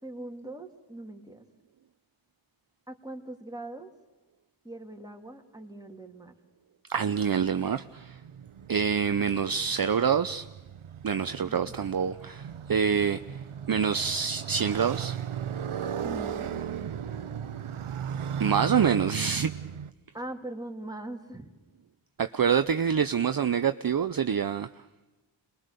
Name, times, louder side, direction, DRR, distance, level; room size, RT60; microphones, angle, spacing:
voice 1, 0.0-1.4 2.9-3.9 4.6-6.3 11.5-11.7 16.0-16.6 20.1-21.5, right 1 dB, 10° right, 2.6 m, -41 dB
voice 2, 6.9-8.2 8.7-10.4 11.0-13.4 13.7-15.2 18.4-19.5 22.2-24.7, right 7 dB, 45° right, 0.7 m, -26 dB
Motorcycle, 7.8-19.9, right 8 dB, 80° right, 0.9 m, -37 dB
27.0 x 21.5 x 6.8 m
cardioid pair, 55°, 49 cm